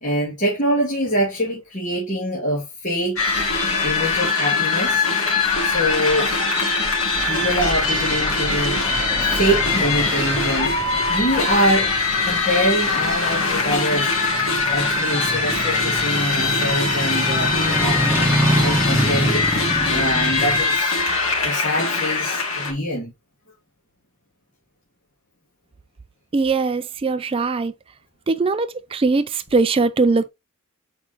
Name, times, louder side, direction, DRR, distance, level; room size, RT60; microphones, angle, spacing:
voice 1, 0.0-3.3 3.8-5.1 5.6-6.3 7.2-12.0 12.2-14.1 14.7-18.3 18.6-21.0 21.4-23.1, equal, 35° left, 2.4 m, -24 dB
sound 1, 3.2-22.7, left 3 dB, 70° left, 2.7 m, -22 dB
sound 2, 7.2-20.6, right 1 dB, 10° right, 1.3 m, -27 dB
voice 2, 26.3-27.7 28.3-30.3, right 3 dB, 25° right, 0.3 m, -20 dB
7.0 x 4.8 x 3.0 m
head